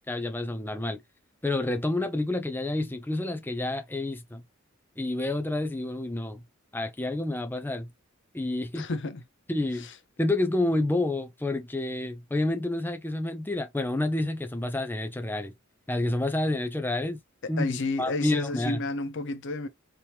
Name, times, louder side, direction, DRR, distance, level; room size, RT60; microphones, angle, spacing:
voice 1, 0.1-1.0 1.4-4.4 5.0-6.4 6.7-7.9 8.3-8.9 9.5-9.9 10.2-15.5 15.9-17.2 17.5-18.8, left 2 dB, 10° left, 0.6 m, -29 dB
voice 2, 8.8-9.2 17.4-19.7, left 2 dB, 60° left, 0.7 m, -31 dB
3.5 x 3.0 x 2.8 m
head